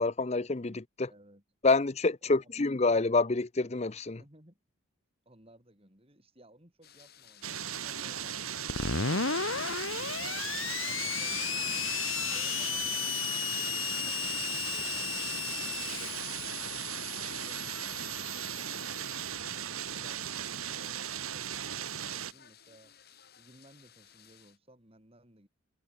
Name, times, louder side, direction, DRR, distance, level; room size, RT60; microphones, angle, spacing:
voice 1, 0.0-1.1 1.6-4.2, left 3 dB, 30° left, 0.6 m, -27 dB
voice 2, 1.1-1.4 2.2-2.5 4.2-4.6 5.2-9.6 10.0-11.9 12.3-15.1 15.5-16.4 16.7-19.1 19.5-22.9 23.4-25.5, right 1 dB, 25° right, 4.6 m, -59 dB
sound 1, 6.8-24.6, left 9 dB, 50° left, 3.8 m, -58 dB
sound 2, 7.4-22.3, right 9 dB, 85° right, 2.3 m, -37 dB
Screech, 8.7-19.1, left 7 dB, 70° left, 1.9 m, -34 dB
head